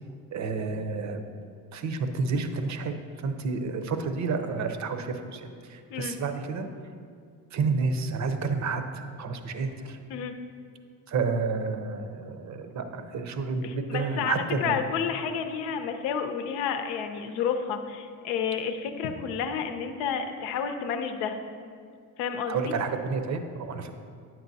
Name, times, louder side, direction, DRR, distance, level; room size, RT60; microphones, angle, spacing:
voice 1, 0.3-1.2 1.7-6.7 7.5-10.0 11.1-14.8 22.5-23.9, right 4 dB, 45° right, 8 dB, 0.7 m, -30 dB
voice 2, 13.6-21.4 22.2-22.7, left 7 dB, 75° left, 7 dB, 0.7 m, -30 dB
8.7 x 6.0 x 2.7 m, 2.2 s
hypercardioid pair, 65°, 41 cm